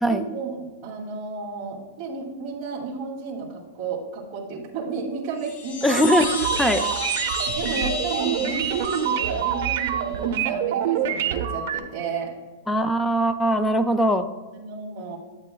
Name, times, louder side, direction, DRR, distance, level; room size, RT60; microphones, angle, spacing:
voice 1, 0.1-6.0 6.7-7.0 7.5-12.3 14.5-15.2, right 4 dB, 25° right, -6 dB, 2.4 m, -32 dB
Chime, 5.3-10.0, left 3 dB, 70° left, 2.0 m, -32 dB
voice 2, 5.8-6.9 12.7-14.3, equal, 5° left, 9 dB, 0.3 m, -21 dB
sound 1, 5.9-11.8, right 9 dB, 55° right, 0.6 m, -26 dB
11.0 x 8.3 x 2.3 m, 1.3 s
supercardioid pair, 170°, 0 cm